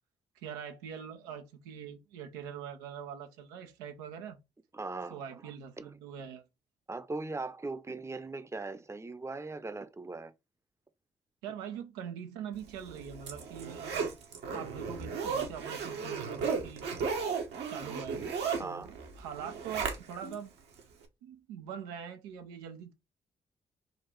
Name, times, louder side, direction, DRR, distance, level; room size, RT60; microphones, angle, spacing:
voice 1, 0.3-4.4 5.1-6.4 11.4-14.2 14.5-16.9 17.7-18.2 18.6-20.5 21.2-22.9, right 8 dB, 85° right, 0.6 m, -43 dB
voice 2, 4.7-5.2 5.8-6.0 6.9-10.3 18.6-18.9, right 3 dB, 15° right, 0.7 m, -39 dB
Zipper (clothing), 12.8-20.4 20.8-20.9, right 5 dB, 70° right, 1.1 m, -35 dB
3.9 x 2.4 x 4.3 m
hypercardioid pair, 45°, 18 cm